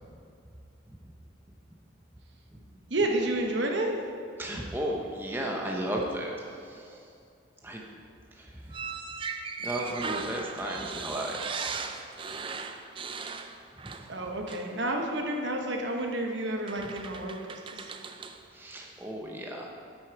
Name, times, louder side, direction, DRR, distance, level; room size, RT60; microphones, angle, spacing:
voice 1, 2.9-3.9 14.1-17.9, right 1 dB, 60° right, 2 dB, 1.0 m, -30 dB
voice 2, 4.4-7.1 7.6-7.9 8.3-8.9 9.6-11.4 13.8-14.3 18.5-19.7, right 1 dB, 10° right, -1 dB, 0.7 m, -35 dB
sound 1, 8.7-14.2 14.5-14.7 15.9-16.1 16.7-18.4, right 5 dB, 25° right, 0.4 m, -38 dB
9.4 x 8.5 x 4.6 m, 2.4 s
head